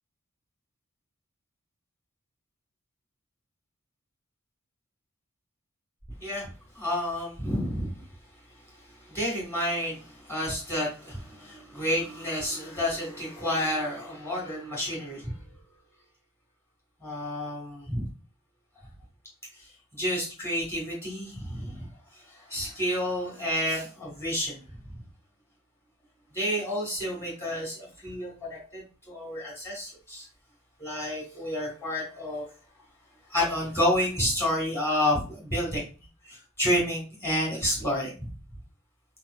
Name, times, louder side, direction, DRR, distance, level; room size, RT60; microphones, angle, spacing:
voice 1, 6.8-7.9 9.1-15.3 17.0-18.1 19.9-21.9 22.5-24.6 26.3-30.3 30.8-32.5 33.3-35.8 36.3-38.1, equal, 10° left, -3 dB, 2.3 m, -30 dB
4.4 x 4.1 x 2.6 m, 0.33 s
head